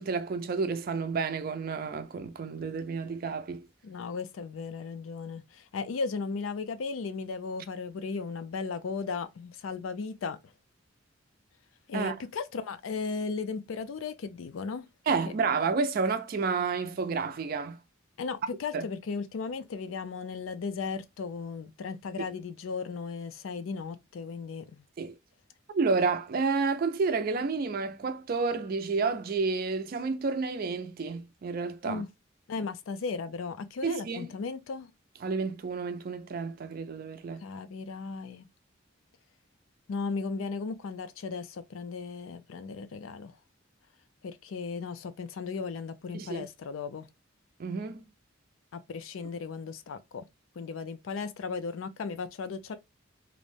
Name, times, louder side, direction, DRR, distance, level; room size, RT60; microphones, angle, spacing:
voice 1, 0.0-3.6 11.9-12.1 15.1-17.8 18.7-18.8 25.0-25.2 25.7-32.0 33.8-34.3 35.2-37.4 46.1-46.4 47.6-48.0, right 4 dB, 45° right, 0.4 m, -30 dB
voice 2, 3.8-10.4 11.9-14.9 18.2-24.8 31.8-32.1 32.5-34.9 37.4-38.5 39.9-43.3 44.2-47.1 48.7-50.3 50.6-52.8, left 4 dB, 85° left, 0.4 m, -36 dB
2.5 x 2.1 x 3.1 m
head